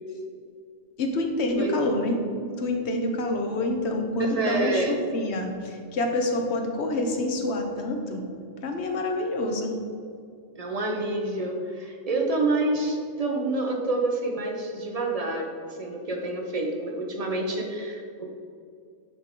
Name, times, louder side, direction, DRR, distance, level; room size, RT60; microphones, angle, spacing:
voice 1, 1.0-2.2 2.6-8.2 8.6-9.8, left 2 dB, 70° left, 3 dB, 1.0 m, -27 dB
voice 2, 4.2-5.0 10.6-18.3, right 2 dB, 40° right, 1 dB, 0.7 m, -28 dB
8.8 x 3.4 x 3.8 m, 2.3 s
omnidirectional pair, 1.2 m